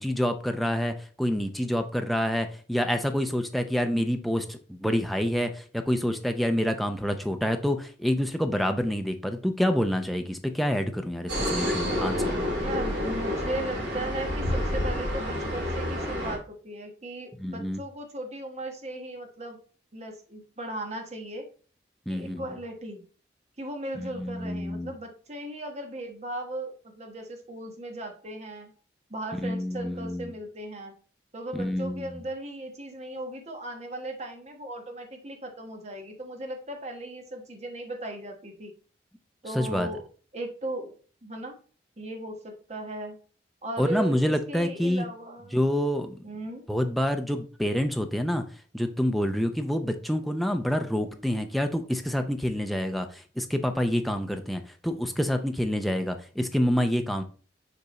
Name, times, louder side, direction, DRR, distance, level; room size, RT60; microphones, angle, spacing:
voice 1, 0.0-12.5 17.4-17.8 22.1-22.4 23.9-24.9 29.4-30.3 31.5-32.1 39.5-39.9 43.8-45.1 45.5-46.2 46.7-48.4 48.7-57.2, equal, ahead, 5 dB, 0.6 m, -27 dB
sound 1, 11.3-16.4, left 1 dB, 65° right, 2.5 m, -29 dB
voice 2, 12.6-19.6 19.9-21.5 22.1-23.0 23.6-28.7 29.1-30.9 31.3-38.7 39.4-40.0 40.3-41.6 42.0-43.2 43.6-45.6 46.2-46.6, right 1 dB, 40° right, 3 dB, 1.2 m, -37 dB
6.8 x 3.5 x 4.1 m, 0.41 s
head